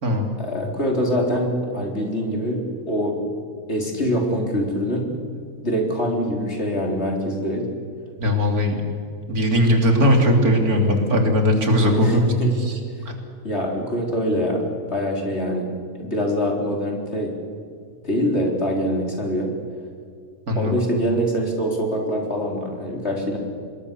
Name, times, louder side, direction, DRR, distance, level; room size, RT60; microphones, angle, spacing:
voice 1, 0.4-3.1 3.7-5.1 5.6-7.7 11.9-12.6 13.4-15.7 15.9-17.3 18.0-19.5 20.5-23.4, equal, 45° left, 1 dB, 4.2 m, -24 dB
voice 2, 8.2-8.8 9.3-12.3 12.6-12.8 20.5-20.8, equal, 80° right, 3 dB, 3.5 m, -19 dB
26.5 x 21.0 x 7.0 m, 2.2 s
omnidirectional pair, 1.5 m